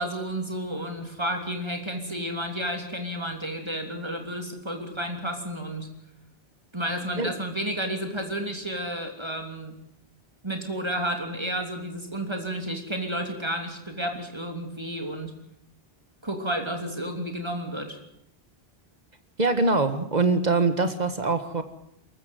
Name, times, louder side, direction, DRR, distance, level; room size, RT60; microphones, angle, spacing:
voice 1, 0.0-5.9 6.7-9.8 10.4-15.4 16.2-18.0, right 1 dB, 25° right, 4 dB, 3.2 m, -31 dB
voice 2, 19.4-21.6, right 3 dB, 45° right, 10 dB, 1.9 m, -23 dB
22.5 x 14.5 x 9.3 m, 0.76 s
omnidirectional pair, 1.0 m